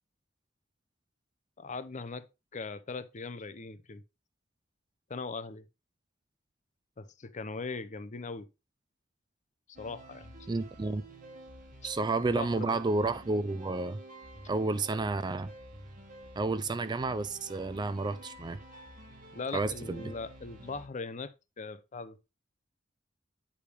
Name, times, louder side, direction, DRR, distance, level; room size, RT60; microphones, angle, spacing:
voice 1, 1.6-2.3 2.5-4.0 5.1-5.6 7.0-8.5 9.8-10.3 12.3-12.8 19.3-22.2, left 4 dB, 40° left, 0.6 m, -40 dB
sound 1, 9.7-20.9, right 1 dB, 45° right, 1.3 m, -50 dB
voice 2, 10.5-11.0 11.8-14.0 14.5-15.5 16.4-18.6 19.5-20.1, right 3 dB, 25° right, 0.4 m, -31 dB
8.4 x 4.9 x 3.3 m
head